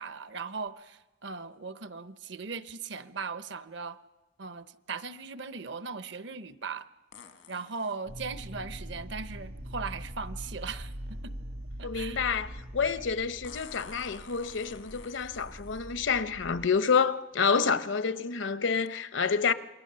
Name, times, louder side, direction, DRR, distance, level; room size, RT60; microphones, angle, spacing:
voice 1, 0.0-4.0 4.4-6.9 7.5-10.9 11.2-11.3 11.8-12.2, right 4 dB, 65° right, 0.8 m, -38 dB
sound 1, 0.7-0.8 7.1-8.0 10.0-10.1 13.4-15.9 16.9-17.0 17.6-17.9 18.9-19.0, left 6 dB, 85° left, 1.7 m, -51 dB
sound 2, 8.1-16.7, equal, 80° right, 2.3 m, -42 dB
voice 2, 11.8-19.5, left 5 dB, 70° left, 0.8 m, -28 dB
28.0 x 22.0 x 6.8 m
head